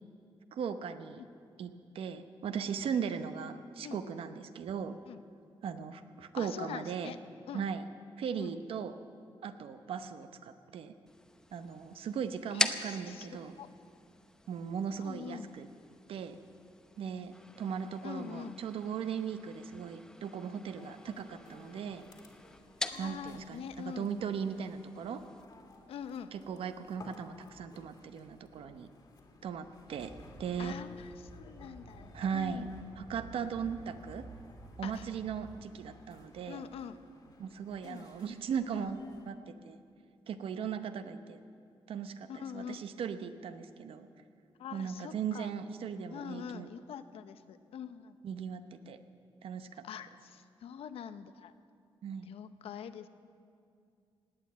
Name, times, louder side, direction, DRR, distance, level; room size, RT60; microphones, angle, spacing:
voice 1, 0.5-1.2 1.6-4.9 5.6-7.1 7.5-7.8 8.2-9.0 9.4-10.9 11.5-13.6 14.5-15.7 16.1-16.4 17.0-22.0 23.0-25.2 26.3-28.9 29.4-30.1 30.4-30.8 32.1-32.7 33.0-34.2 34.8-36.6 37.4-39.0 39.3-39.8 40.3-41.4 41.9-44.1 44.7-46.7 48.2-49.0 49.4-49.7 52.0-52.3, right 7 dB, 75° right, 10 dB, 0.8 m, -38 dB
voice 2, 6.3-7.2 7.5-7.7 8.4-8.5 12.5-13.7 15.0-15.5 18.0-18.6 22.8-24.1 25.9-26.3 30.6-32.7 34.8-35.1 36.5-37.0 37.8-38.1 38.7-38.9 42.3-42.8 44.6-45.5 46.1-48.2 49.8-51.5 52.3-53.1, left 8 dB, 85° left, 11 dB, 0.7 m, -44 dB
sound 1, 11.1-25.4, left 1 dB, 5° left, 0.7 m, -43 dB
sound 2, 20.8-39.3, left 3 dB, 45° left, 2.0 m, -58 dB
sound 3, 29.9-35.5, right 2 dB, 10° right, 1.4 m, -52 dB
17.5 x 9.4 x 8.7 m, 2.4 s
wide cardioid pair, 145°, 10 cm